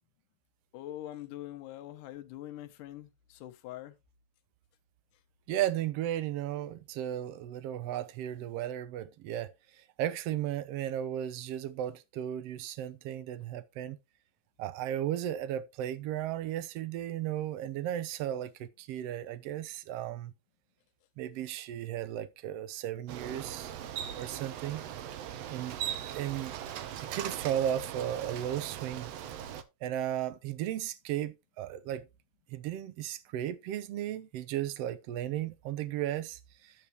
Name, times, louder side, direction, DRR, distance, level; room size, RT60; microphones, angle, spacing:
voice 1, 0.7-4.0 27.0-27.2, left 13 dB, 80° left, 2.4 m, -44 dB
voice 2, 5.5-14.0 14.6-20.3 21.2-23.7 24.1-24.8 25.5-26.6 27.0-29.1 29.8-32.1 32.5-36.7, right 11 dB, 85° right, 1.4 m, -35 dB
Bicycle, 23.1-29.6, right 10 dB, 65° right, 1.8 m, -40 dB
9.5 x 9.1 x 3.0 m
omnidirectional pair, 3.7 m